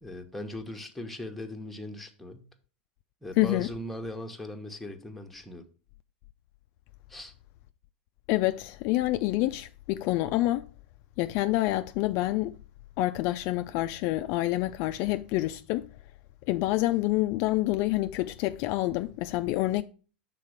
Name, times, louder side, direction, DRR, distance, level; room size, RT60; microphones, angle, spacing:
voice 1, 0.0-2.5 3.2-5.6 7.1-7.3, left 1 dB, 5° left, 1.0 m, -39 dB
voice 2, 3.4-3.7 8.3-10.7 11.2-12.5 13.0-15.9 16.5-19.8, left 17 dB, 50° left, 0.3 m, -27 dB
5.7 x 4.0 x 5.0 m
hypercardioid pair, 110°, 6 cm